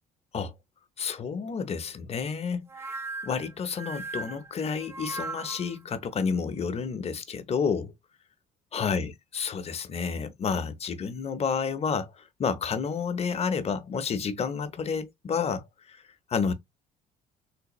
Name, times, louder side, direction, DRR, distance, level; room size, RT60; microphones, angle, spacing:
voice 1, 1.0-2.6 3.2-7.9 8.7-12.1 12.4-15.6 16.3-16.5, left 6 dB, 35° left, 0.7 m, -30 dB
sound 1, 2.7-5.8, right 3 dB, 15° right, 0.5 m, -38 dB
3.4 x 3.2 x 3.0 m
cardioid pair, 110°, 17 cm